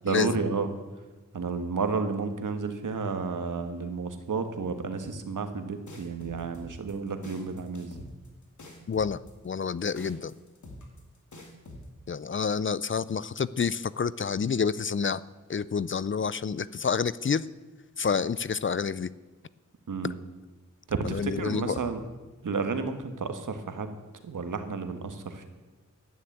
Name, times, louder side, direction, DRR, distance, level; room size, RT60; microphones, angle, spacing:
voice 1, 0.0-0.7 1.3-8.1 19.9-20.2 20.9-22.0 22.4-23.9 24.2-25.5, right 4 dB, 80° right, 8 dB, 1.5 m, -31 dB
sound 1, 5.9-11.9, left 1 dB, 70° left, 2.6 m, -46 dB
voice 2, 8.9-9.2 9.4-10.3 12.1-15.2 15.5-17.4 18.0-19.1 21.0-21.8, left 6 dB, 40° left, 19 dB, 0.5 m, -28 dB
11.0 x 9.4 x 8.6 m, 1.2 s
cardioid pair, 60°, 31 cm